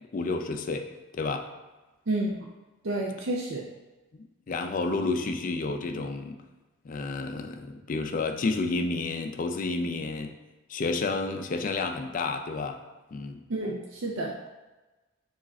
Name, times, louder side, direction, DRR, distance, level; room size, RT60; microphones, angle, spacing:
voice 1, 0.1-0.9 1.1-1.5 4.1-6.4 6.8-10.3 10.7-12.8 13.1-13.4, left 3 dB, 40° left, 6 dB, 0.4 m, -30 dB
voice 2, 2.1-2.4 2.8-3.6 13.5-14.3, right 2 dB, 65° right, -2 dB, 0.5 m, -30 dB
4.7 x 2.5 x 4.1 m, 1.1 s
head